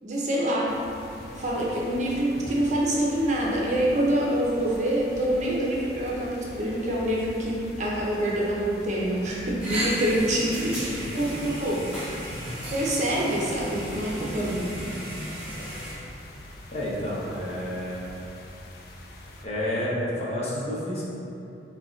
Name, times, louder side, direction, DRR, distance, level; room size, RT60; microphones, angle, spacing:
voice 1, 0.0-0.8 1.3-11.9 12.7-14.8, right 1 dB, 40° right, -4 dB, 0.6 m, -26 dB
sound 1, 0.6-19.5, left 1 dB, 55° left, 0.4 m, -44 dB
sound 2, 9.6-15.9, equal, 5° right, 1.4 m, -34 dB
voice 2, 16.7-18.1 19.4-21.0, left 1 dB, 35° left, -7 dB, 0.8 m, -30 dB
6.3 x 2.7 x 3.1 m, 2.8 s
head